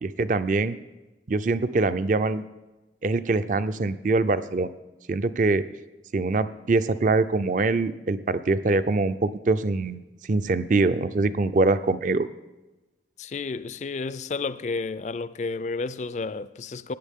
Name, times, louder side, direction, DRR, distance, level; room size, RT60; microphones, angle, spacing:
voice 1, 0.0-0.8 1.3-2.4 3.0-4.7 5.1-5.7 6.1-10.0 10.3-12.3, right 3 dB, 45° right, 0.4 m, -23 dB
voice 2, 13.2-16.9, left 4 dB, 40° left, 0.4 m, -31 dB
16.5 x 9.9 x 3.6 m
head